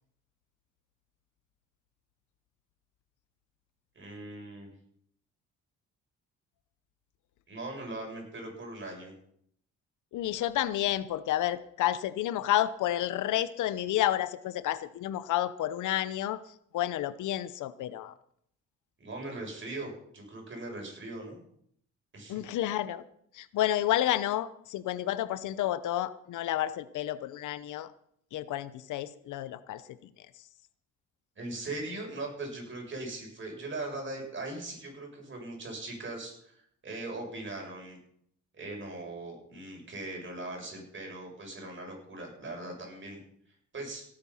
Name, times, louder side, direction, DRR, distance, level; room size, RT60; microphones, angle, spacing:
voice 1, 3.9-4.7 7.5-9.1 19.0-21.4 22.1-22.4 31.4-38.0 38.5-43.2 43.7-44.0, right 2 dB, 40° right, 1 dB, 7.0 m, -40 dB
voice 2, 10.1-16.4 16.7-18.1 22.3-23.0 23.3-27.9 28.3-29.8, left 13 dB, 80° left, 15 dB, 0.9 m, -30 dB
17.5 x 8.9 x 5.7 m, 0.68 s
cardioid pair, 90°, 30 cm